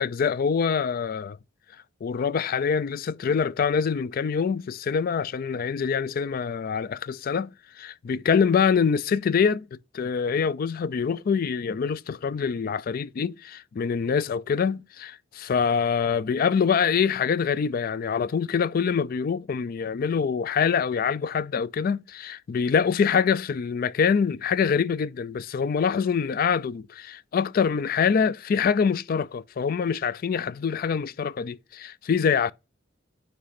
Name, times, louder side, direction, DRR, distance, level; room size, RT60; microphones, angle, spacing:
voice 1, 0.0-1.4 2.0-32.5, left 6 dB, 50° left, 0.3 m, -25 dB
9.6 x 3.3 x 4.2 m
head